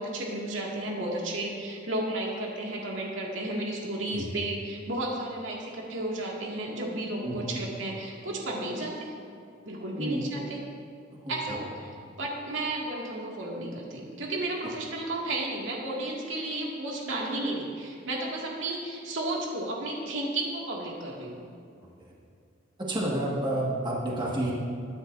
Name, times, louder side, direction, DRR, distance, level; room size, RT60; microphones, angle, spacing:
voice 1, 0.0-9.1 9.7-10.6 11.3-21.4, right 2 dB, 75° right, -3 dB, 2.2 m, -33 dB
voice 2, 7.2-7.6 10.0-10.2 11.2-11.6 22.9-24.5, right 1 dB, 25° right, -4 dB, 1.9 m, -30 dB
21.0 x 10.0 x 2.7 m, 2.5 s
head